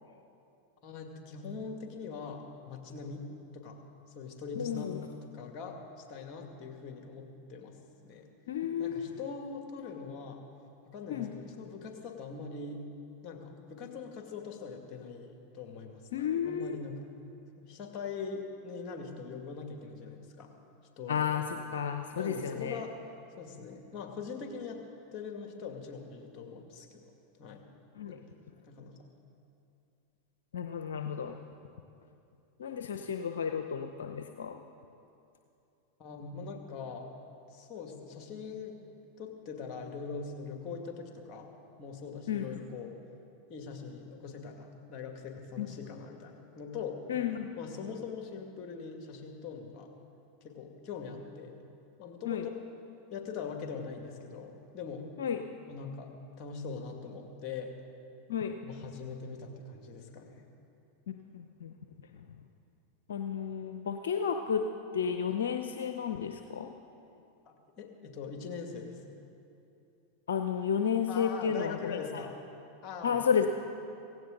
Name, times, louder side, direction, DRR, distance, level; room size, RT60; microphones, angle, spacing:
voice 1, 0.8-3.3 3.5-3.8 4.2-8.3 8.8-10.4 10.9-12.8 13.2-17.1 17.6-20.5 21.0-21.2 22.1-23.0 23.4-24.8 25.1-27.1 27.4-27.6 28.0-28.3 28.6-29.0 36.0-37.1 37.5-38.8 39.2-41.5 41.8-42.9 43.5-47.0 47.6-49.9 50.4-51.6 52.0-52.5 53.1-55.1 55.7-57.7 58.6-60.4 67.8-69.1 71.1-72.4 72.8-73.2, left 5 dB, 40° left, 3 dB, 2.2 m, -42 dB
voice 2, 4.6-5.0 8.5-9.2 11.1-11.3 16.1-16.8 21.1-22.8 27.9-28.2 30.5-31.4 32.6-34.6 42.3-42.6 45.6-45.7 47.1-47.5 52.3-52.5 55.2-55.4 58.3-58.6 61.1-61.7 62.1-62.4 63.1-64.6 64.9-66.7 70.3-72.2 73.0-73.5, left 7 dB, 80° left, 6 dB, 0.6 m, -32 dB
17.0 x 16.0 x 3.9 m, 2.7 s
hypercardioid pair, 95°, 0 cm